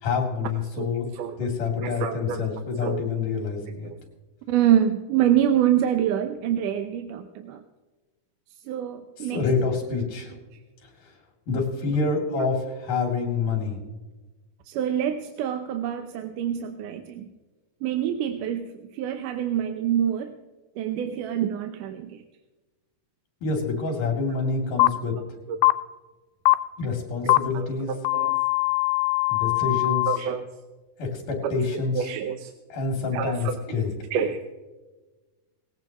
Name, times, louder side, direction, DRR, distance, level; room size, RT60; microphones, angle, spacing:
voice 1, 0.0-1.1 1.4-3.9 9.2-10.3 11.0-11.1 11.5-13.8 23.4-25.2 26.8-27.9 29.3-30.1 31.0-32.1 32.7-33.9, left 4 dB, 70° left, 2 dB, 4.4 m, -27 dB
voice 2, 0.7-1.5 1.8-2.4 2.8-3.0 3.8-4.0 4.5-7.6 8.7-9.4 14.7-17.3 17.8-20.4 20.8-22.2 25.5-25.6 27.2-28.4 30.1-30.5 31.4-31.5 31.9-32.5 33.1-33.6 34.1-34.4, right 10 dB, 80° right, 7 dB, 2.2 m, -26 dB
sound 1, 24.8-24.9 25.6-25.7 26.5-26.6 27.3-27.4 28.0-30.2, left 24 dB, 85° left, 2.2 m, -21 dB
19.0 x 16.5 x 3.0 m, 1.2 s
omnidirectional pair, 3.8 m